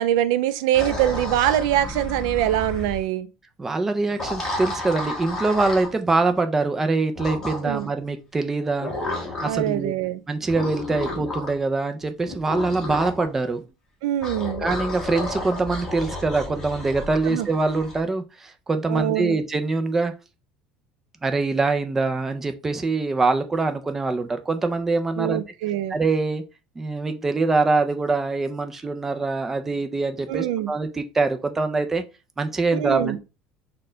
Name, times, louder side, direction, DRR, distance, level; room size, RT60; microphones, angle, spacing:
voice 1, 0.0-3.3 7.6-7.9 9.4-10.2 14.0-14.6 17.3-17.5 18.9-19.4 25.2-26.0 30.3-30.7 32.7-33.2, right 13 dB, 90° right, 0.4 m, -23 dB
sound 1, 0.7-3.0 4.1-5.9 7.2-7.9 8.8-9.7 10.5-11.6 12.3-13.3 14.2-18.0, left 2 dB, 15° left, 1.0 m, -32 dB
voice 2, 3.6-9.9 10.3-13.6 14.6-20.1 21.2-25.4 25.9-26.4 26.8-32.0 32.4-33.2, right 3 dB, 10° right, 0.3 m, -24 dB
4.2 x 2.2 x 3.7 m
cardioid pair, 170°, 3 cm